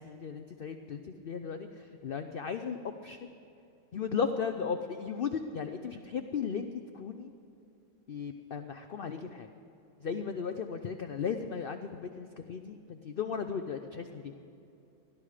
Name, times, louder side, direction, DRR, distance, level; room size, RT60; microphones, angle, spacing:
voice 1, 0.0-3.3 3.9-7.3 8.1-9.5 10.0-14.4, left 6 dB, 70° left, 7 dB, 0.5 m, -36 dB
20.5 x 12.5 x 5.0 m, 2.8 s
omnidirectional pair, 1.7 m